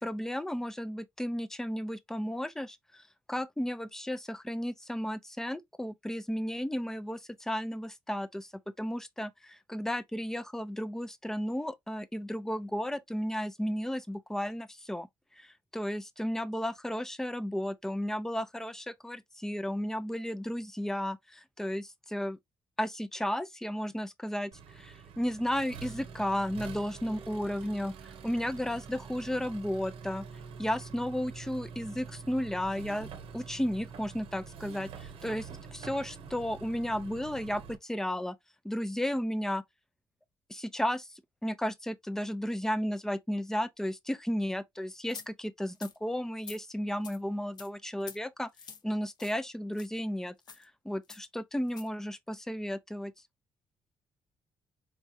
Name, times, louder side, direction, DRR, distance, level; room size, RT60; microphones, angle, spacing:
voice 1, 0.0-3.0 3.3-8.5 8.8-15.1 15.4-22.4 22.8-27.9 28.2-30.2 30.6-33.1 33.3-38.4 38.6-39.6 40.5-41.1 41.4-48.5 48.8-53.1, equal, 5° left, 0.5 m, -34 dB
Accelerating revving vroom, 24.5-37.8, right 6 dB, 85° right, 0.9 m, -46 dB
sound 1, 45.1-45.3 45.7-46.0 46.4-46.6 47.0-47.2 47.6-47.7 48.0-48.2 48.5-48.8 49.2-49.4 49.7-49.9 50.4-50.6 51.1-51.2 51.7-51.9, left 6 dB, 50° left, 0.7 m, -46 dB
4.6 x 3.1 x 2.6 m
cardioid pair, 125°, 9 cm